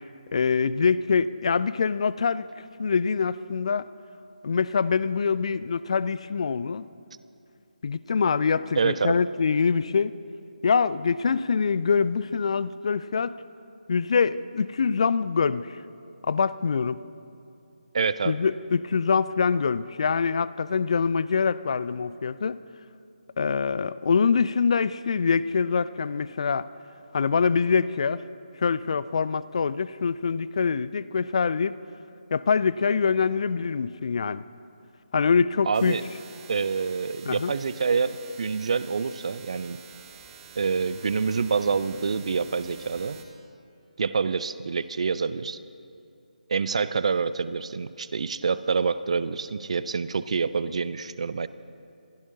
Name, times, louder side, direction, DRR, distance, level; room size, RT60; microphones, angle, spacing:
voice 1, 0.3-2.5 2.8-3.9 4.4-6.9 7.8-10.1 10.6-13.3 13.9-15.8 16.2-17.0 18.3-22.6 23.4-26.7 27.1-28.2 28.6-31.8 32.3-34.4 35.1-36.0 37.3-37.5, left 5 dB, 40° left, 17 dB, 0.4 m, -24 dB
voice 2, 8.7-9.2 17.9-18.3 35.7-36.0 36.5-39.8 40.6-43.2 44.0-45.6 46.5-51.5, right 5 dB, 45° right, 15 dB, 0.5 m, -27 dB
sound 1, 35.7-43.3, right 6 dB, 15° right, 1.1 m, -48 dB
27.5 x 17.0 x 2.8 m, 2.6 s
figure-of-eight pair, 150°, 5 cm